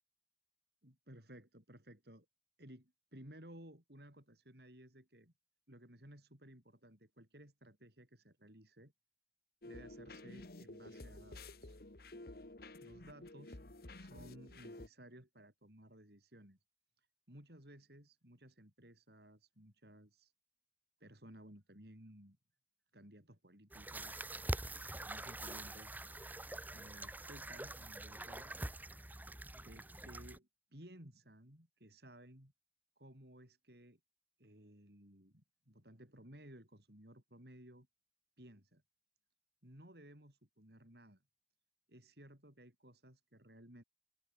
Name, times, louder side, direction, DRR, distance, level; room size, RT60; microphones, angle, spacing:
voice 1, 0.8-2.2 2.6-5.3 5.7-8.9 9.6-11.8 12.8-13.6 13.9-16.6 17.3-20.3 21.0-22.4 22.9-24.2 24.9-25.9 26.7-28.5 29.5-32.5 33.0-34.0 34.4-37.9 38.4-38.8 39.6-41.2 41.9-43.8, right 1 dB, 60° right, 6.9 m, -58 dB
sound 1, 9.6-14.9, left 2 dB, 55° left, 1.7 m, -52 dB
sound 2, 23.7-30.4, right 1 dB, 10° right, 1.0 m, -45 dB
open air
head